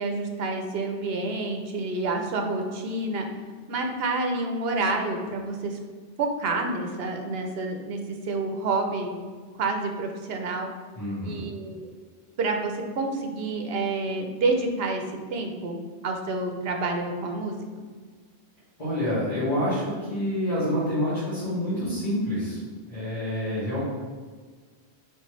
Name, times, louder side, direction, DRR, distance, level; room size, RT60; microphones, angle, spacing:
voice 1, 0.0-3.3 3.7-5.8 6.2-9.1 9.6-10.7 11.2-11.9 12.4-15.0 15.3-17.6, right 3 dB, 70° right, 3 dB, 0.9 m, -28 dB
voice 2, 10.9-11.5 18.8-22.6 22.9-23.8, left 1 dB, 40° left, -13 dB, 1.5 m, -27 dB
4.4 x 3.4 x 3.1 m, 1.5 s
omnidirectional pair, 1.1 m